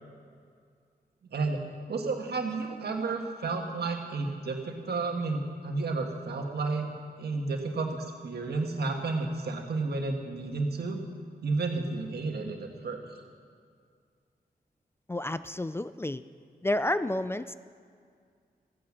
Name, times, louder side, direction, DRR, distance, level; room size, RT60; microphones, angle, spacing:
voice 1, 1.3-1.6 1.9-6.9 7.2-11.0 11.4-13.0, right 3 dB, 85° right, 2 dB, 1.6 m, -31 dB
voice 2, 15.1-16.2 16.6-17.5, left 1 dB, 15° left, 14 dB, 0.3 m, -30 dB
14.0 x 9.8 x 7.4 m, 2.1 s
wide cardioid pair, 85°, 16 cm